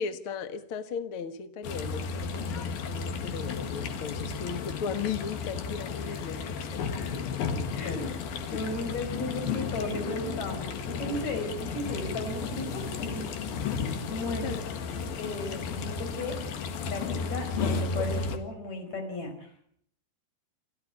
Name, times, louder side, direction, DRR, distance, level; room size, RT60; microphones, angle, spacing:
voice 1, 0.0-7.5 7.7-8.2 14.4-14.6, left 6 dB, 85° left, 10 dB, 1.2 m, -37 dB
sound 1, 1.6-18.4, left 5 dB, 65° left, 3.4 m, -33 dB
voice 2, 7.7-8.1 8.5-13.3 13.7-14.5 15.2-16.6 16.9-19.5, left 2 dB, 40° left, 6 dB, 6.1 m, -35 dB
29.5 x 14.0 x 9.5 m, 0.65 s
omnidirectional pair, 4.9 m